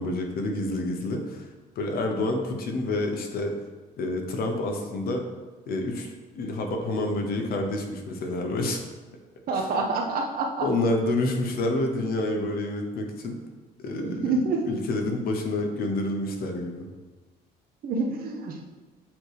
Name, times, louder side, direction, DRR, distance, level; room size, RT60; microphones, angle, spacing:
voice 1, 0.0-1.5 1.8-3.5 4.0-5.2 5.7-8.8 9.5-9.8 10.6-13.4 13.8-16.9, left 2 dB, 60° left, 3 dB, 1.0 m, -28 dB
voice 2, 9.5-10.6 14.0-14.6 17.8-18.6, right 3 dB, 60° right, 1 dB, 0.9 m, -27 dB
7.3 x 3.1 x 4.9 m, 1.3 s
cardioid pair, 110°, 17 cm